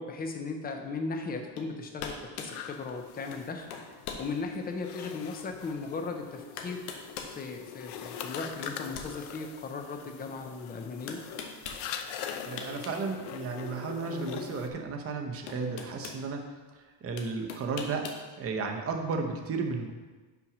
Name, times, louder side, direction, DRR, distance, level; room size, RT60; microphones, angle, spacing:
voice 1, 0.0-3.7 4.2-6.8 7.3-11.2, left 4 dB, 20° left, 5 dB, 0.5 m, -37 dB
sound 1, 1.6-1.7 2.0-2.6 3.3-3.4 3.7-4.3 4.9-5.0 6.0-6.1 6.6-7.4 8.0-9.7 11.1-11.8 12.3-13.0 13.3-13.4 14.8-14.9 15.5-16.2 17.2-18.2, left 6 dB, 80° left, 1.1 m, -41 dB
nathalie&esther, 2.5-14.7, left 8 dB, 60° left, 0.6 m, -43 dB
voice 2, 12.4-16.4 16.7-18.1 18.4-19.9, right 4 dB, 30° right, 3 dB, 0.8 m, -34 dB
5.8 x 5.3 x 5.9 m, 1.3 s
cardioid pair, 175°, 47 cm